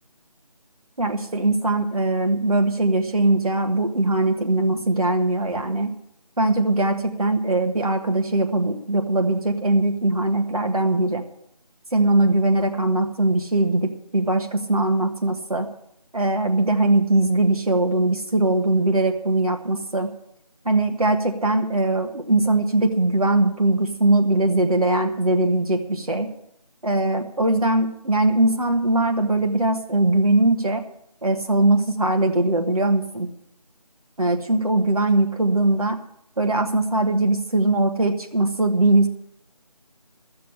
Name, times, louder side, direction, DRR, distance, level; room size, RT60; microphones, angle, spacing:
voice 1, 1.0-5.9 6.4-11.2 11.9-15.7 16.1-20.1 20.6-26.3 26.8-30.8 31.2-33.3 34.2-36.0 36.4-39.1, right 2 dB, 60° right, 3 dB, 1.5 m, -21 dB
13.5 x 6.9 x 8.5 m, 0.75 s
figure-of-eight pair, 170°, 21 cm